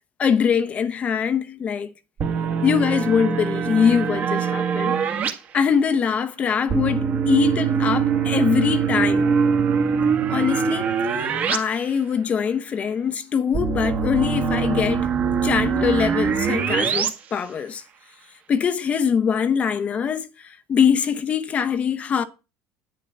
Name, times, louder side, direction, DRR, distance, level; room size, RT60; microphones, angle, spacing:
voice 1, 0.2-1.9 2.6-5.0 5.5-9.3 10.3-10.9 11.2-15.1 15.4-17.8 18.5-22.2, left 7 dB, 30° left, 1.0 m, -23 dB
sound 1, 2.2-5.3 6.7-11.6 11.9-12.0 13.5-17.1, right 6 dB, 40° right, 2.0 m, -22 dB
10.5 x 9.8 x 4.3 m
cardioid pair, 145°, 5 cm